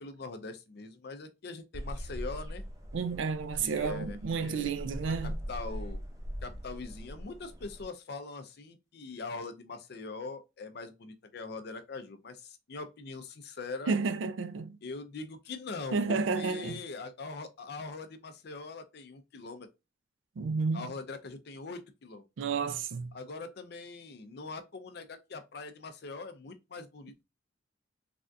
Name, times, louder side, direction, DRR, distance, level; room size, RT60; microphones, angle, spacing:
voice 1, 0.0-2.6 3.6-4.7 5.1-6.0 6.4-13.9 14.8-19.7 20.7-22.2 23.1-27.2, left 3 dB, 55° left, 0.4 m, -42 dB
sound 1, 1.7-7.8, equal, 15° right, 0.5 m, -41 dB
voice 2, 2.9-5.4 13.9-14.8 15.9-16.8 20.4-20.9 22.4-23.1, right 4 dB, 70° right, 0.4 m, -31 dB
3.3 x 2.3 x 2.5 m
head